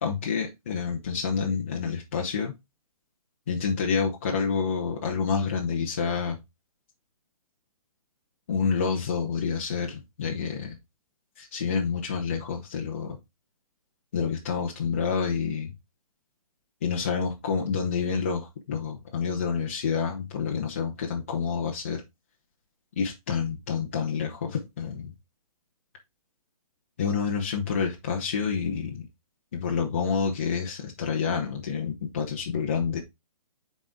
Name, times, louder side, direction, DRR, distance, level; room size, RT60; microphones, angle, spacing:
voice 1, 0.0-2.5 3.5-6.4 8.5-10.8 11.4-13.2 14.1-15.7 16.8-22.0 23.0-25.1 27.0-29.0 29.5-33.0, left 6 dB, 20° left, 0.6 m, -28 dB
6.9 x 4.2 x 3.5 m
hypercardioid pair, 180°, 19 cm